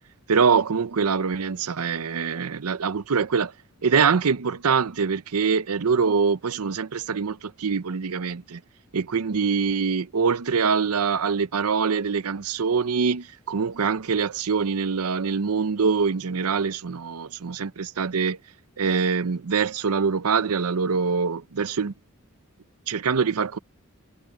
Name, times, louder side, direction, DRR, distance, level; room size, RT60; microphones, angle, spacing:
voice 1, 0.3-3.5 3.8-8.6 8.9-18.4 18.8-21.9 22.9-23.6, right 5 dB, 90° right, 0.7 m, -24 dB
head